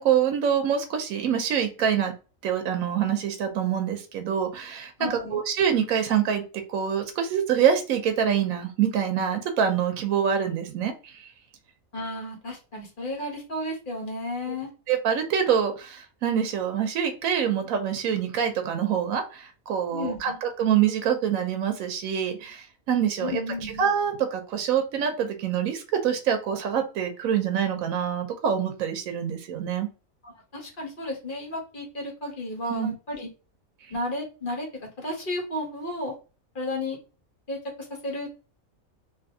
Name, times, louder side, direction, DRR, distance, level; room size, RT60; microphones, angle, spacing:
voice 1, 0.0-2.1 2.4-11.3 14.9-23.4 23.8-29.9 32.7-32.9, right 8 dB, 90° right, 6 dB, 1.0 m, -25 dB
voice 2, 5.0-5.4 11.9-14.7 19.9-20.4 23.2-23.9 30.2-33.3 33.9-34.7 35.0-36.1 36.5-37.0 37.5-38.5, left 1 dB, 40° left, -1 dB, 1.1 m, -33 dB
3.3 x 2.6 x 2.6 m, 0.34 s
omnidirectional pair, 1.4 m